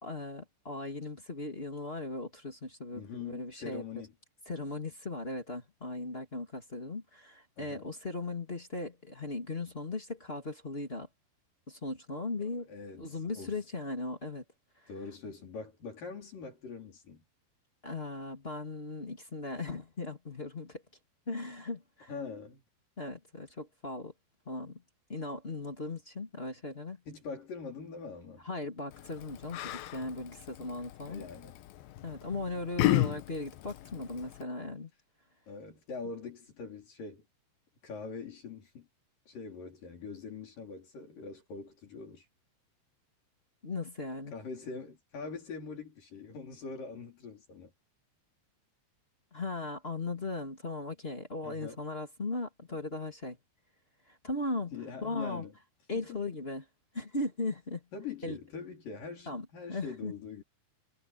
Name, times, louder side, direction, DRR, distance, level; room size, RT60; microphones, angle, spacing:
voice 1, 0.0-3.8 4.4-11.1 11.7-12.7 13.0-14.4 14.8-14.9 17.8-20.8 21.3-22.1 23.0-24.1 24.4-24.8 25.1-27.0 28.4-31.2 32.0-34.9 43.6-44.3 49.3-53.4 54.1-54.7 55.0-55.4 55.9-56.6 56.9-57.8 58.2-58.4 59.2-60.1, left 2 dB, 20° left, 1.7 m, -38 dB
voice 2, 2.9-4.1 7.6-7.9 12.7-13.5 14.9-17.2 22.1-22.6 27.1-28.5 31.1-31.6 35.5-37.2 37.8-38.9 39.3-42.3 44.3-47.7 51.4-51.8 54.7-55.5 55.9-56.2 57.9-60.4, left 5 dB, 50° left, 5.7 m, -43 dB
Yell, 28.9-34.4, left 16 dB, 75° left, 2.3 m, -34 dB
omnidirectional pair, 5.2 m